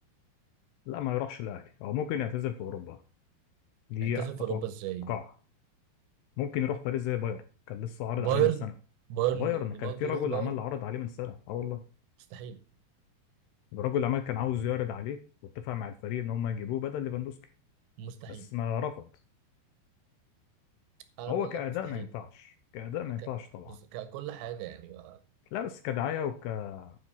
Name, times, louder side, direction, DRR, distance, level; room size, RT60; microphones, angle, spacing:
voice 1, 0.9-3.0 3.9-4.3 4.5-4.6 5.1-5.2 6.4-7.4 7.7-8.5 9.4-11.8 13.7-15.2 15.6-17.3 18.3-19.1 21.3-23.8 25.5-27.0, left 10 dB, 85° left, 9 dB, 2.5 m, -33 dB
voice 2, 4.0-5.1 8.2-8.7 9.1-10.6 12.3-12.6 18.0-18.5 21.2-21.6 21.9-22.1 23.2-23.3 23.7-25.2, right 12 dB, 80° right, 12 dB, 3.0 m, -33 dB
9.6 x 5.2 x 5.5 m, 0.37 s
omnidirectional pair, 5.2 m